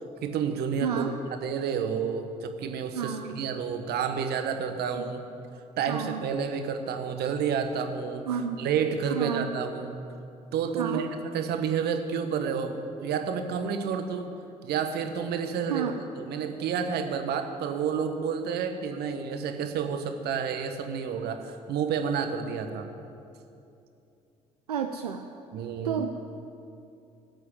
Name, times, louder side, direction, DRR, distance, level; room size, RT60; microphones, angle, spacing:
voice 1, 0.2-1.1 1.4-5.2 5.8-10.0 10.5-11.1 11.3-14.3 14.6-22.9 25.5-26.1, right 6 dB, 55° right, 7 dB, 1.3 m, -30 dB
voice 2, 0.8-1.1 2.9-3.3 5.0-5.1 5.9-6.2 8.3-8.6 9.1-9.5 10.8-11.1 15.7-15.9 24.7-25.3 25.8-26.2, right 7 dB, 80° right, 4 dB, 0.6 m, -31 dB
18.0 x 8.2 x 9.1 m, 2.6 s
figure-of-eight pair, 45°, 20 cm